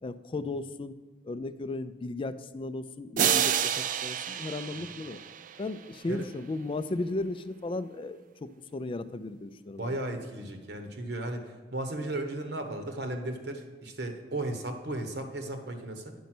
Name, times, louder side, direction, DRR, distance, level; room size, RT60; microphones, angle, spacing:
voice 1, 0.0-0.9 1.2-5.2 5.6-10.0, left 2 dB, 30° left, 13 dB, 0.4 m, -35 dB
sound 1, 3.2-5.8, right 9 dB, 50° right, 0.4 m, -29 dB
voice 2, 9.8-11.4 11.7-16.1, right 1 dB, 65° right, 6 dB, 1.1 m, -35 dB
9.3 x 5.3 x 6.0 m, 1.4 s
head